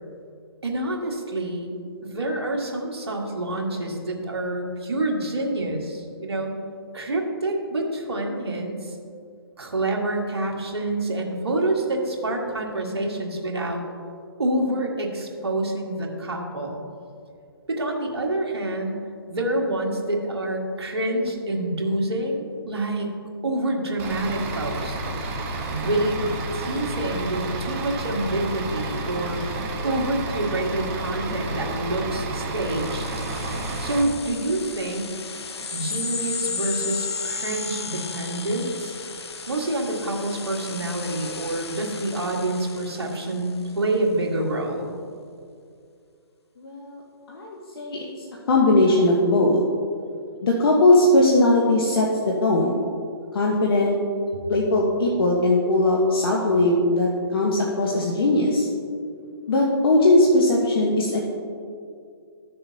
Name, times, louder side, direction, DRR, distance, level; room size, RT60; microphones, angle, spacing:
voice 1, 0.6-6.6 6.9-9.0 9.6-13.8 14.4-16.8 17.7-19.0 19.3-23.2 23.4-25.0 25.7-26.3 26.5-29.4 29.8-33.1 33.8-35.1 35.7-38.9 39.5-44.9, right 1 dB, 80° right, 0 dB, 1.6 m, -27 dB
Bus / Idling, 24.0-34.0, right 2 dB, 30° right, 1.0 m, -31 dB
sound 1, 32.5-43.6, left 5 dB, 90° left, 0.6 m, -34 dB
voice 2, 46.6-47.0 47.3-48.1 48.5-49.6 50.4-52.7 53.3-54.0 54.5-58.7 59.5-61.2, left 2 dB, 65° left, -2 dB, 1.2 m, -19 dB
13.5 x 6.7 x 2.8 m, 2.4 s
hypercardioid pair, 140°, 13 cm